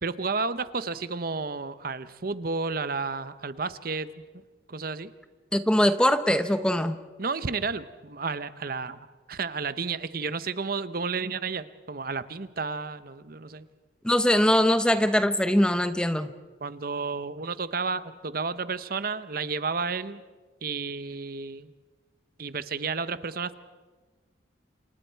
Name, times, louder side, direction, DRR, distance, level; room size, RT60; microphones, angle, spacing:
voice 1, 0.0-4.1 4.7-5.1 7.2-9.0 9.3-13.7 16.6-20.2 20.6-21.7 22.4-23.5, right 4 dB, 50° right, 13 dB, 0.8 m, -31 dB
voice 2, 5.5-7.0 14.0-16.3, equal, 5° left, 10 dB, 0.7 m, -22 dB
29.0 x 27.5 x 4.6 m, 1.4 s
head